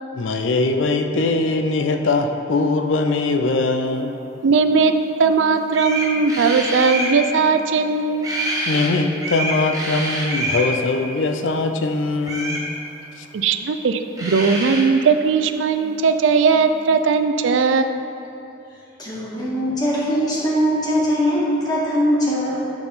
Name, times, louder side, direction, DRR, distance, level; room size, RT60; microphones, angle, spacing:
voice 1, 0.1-4.2 8.7-12.6 13.2-13.3, left 3 dB, 85° left, 6 dB, 0.5 m, -21 dB
voice 2, 4.4-4.9 5.2-8.4 13.3-17.8, right 5 dB, 80° right, 8 dB, 0.4 m, -18 dB
sound 1, 5.3-5.4 5.7-7.2 8.2-8.9 9.2-10.7 12.2-12.7 13.9-14.0 14.2-14.8, right 1 dB, 20° right, 1.0 m, -26 dB
voice 3, 19.0-22.7, equal, 20° left, -7 dB, 1.5 m, -21 dB
8.9 x 3.9 x 5.5 m, 2.7 s
head